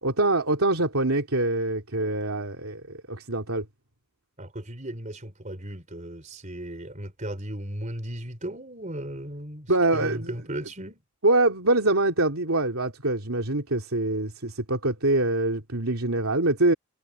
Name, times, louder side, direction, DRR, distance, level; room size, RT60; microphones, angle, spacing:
voice 1, 0.0-3.6 9.7-10.3 11.2-16.7, right 2 dB, 75° right, 3.0 m, -24 dB
voice 2, 4.4-11.0, right 1 dB, 35° right, 4.1 m, -36 dB
head